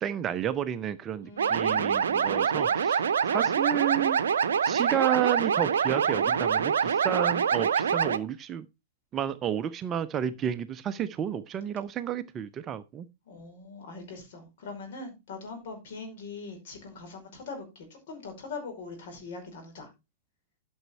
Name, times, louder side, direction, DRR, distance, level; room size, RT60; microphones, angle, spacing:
voice 1, 0.0-4.2 4.6-8.6 9.1-13.1, right 10 dB, 25° right, 0.6 m, -31 dB
voice 2, 1.2-2.8 3.3-3.5 13.3-19.9, left 4 dB, 50° left, 5.1 m, -42 dB
sound 1, 1.4-8.2, right 7 dB, 60° right, 0.7 m, -25 dB
12.0 x 6.3 x 4.4 m
figure-of-eight pair, 105°, 0 cm